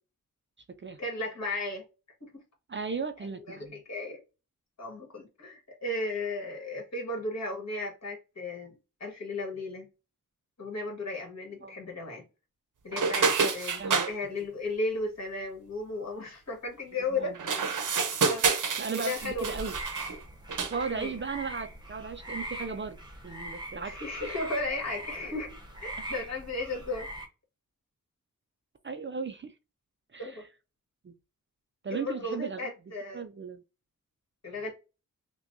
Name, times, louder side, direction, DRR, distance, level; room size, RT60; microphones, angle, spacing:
voice 1, 1.0-1.8 2.2-2.3 3.5-4.2 4.8-9.9 10.6-12.2 12.8-17.7 18.2-18.5 18.9-19.6 20.9-21.1 23.8-27.1 30.2-30.4 31.9-33.2 34.4-34.7, left 2 dB, 55° left, 1.7 m, -35 dB
voice 2, 2.7-3.8 11.6-11.8 13.2-13.5 13.8-14.1 17.1-17.4 18.8-19.7 20.7-23.0 23.2-24.0 24.3-24.4 28.8-29.5 30.1-30.5 31.0-31.1 31.8-32.7 33.1-33.6, right 5 dB, 35° right, 0.4 m, -36 dB
sound 1, 12.9-14.1 17.3-20.2 20.5-20.9, right 5 dB, 70° right, 0.7 m, -28 dB
sound 2, 19.2-27.3, right 1 dB, 15° right, 0.9 m, -41 dB
5.8 x 2.2 x 2.6 m
wide cardioid pair, 135°, 33 cm